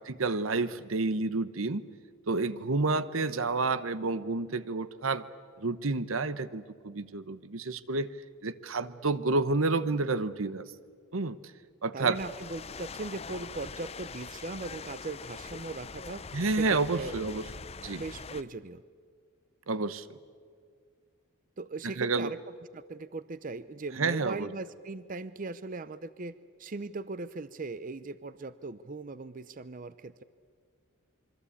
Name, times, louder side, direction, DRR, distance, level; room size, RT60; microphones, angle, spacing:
voice 1, 0.0-1.8 2.3-5.2 5.6-8.1 8.4-10.6 11.1-11.4 11.8-12.2 16.3-17.4 17.8-18.0 19.7-20.1 22.0-22.3 24.0-24.5, right 3 dB, 85° right, 14 dB, 1.0 m, -29 dB
voice 2, 11.9-16.2 16.5-17.2 17.9-18.8 21.6-22.4 22.7-30.2, right 3 dB, 40° right, 15 dB, 0.6 m, -39 dB
sound 1, 12.1-18.4, left 5 dB, 30° left, 0.6 m, -43 dB
26.5 x 24.0 x 8.6 m, 2.1 s
head